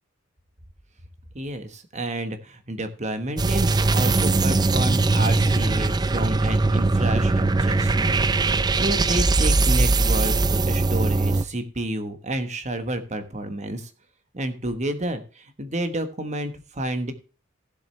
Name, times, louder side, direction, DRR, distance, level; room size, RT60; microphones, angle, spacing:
voice 1, 1.3-13.9 14.3-17.1, right 1 dB, 35° right, 9 dB, 1.3 m, -30 dB
sound 1, 3.4-11.4, right 3 dB, 20° right, 0.4 m, -21 dB
15.0 x 7.7 x 3.3 m, 0.35 s
head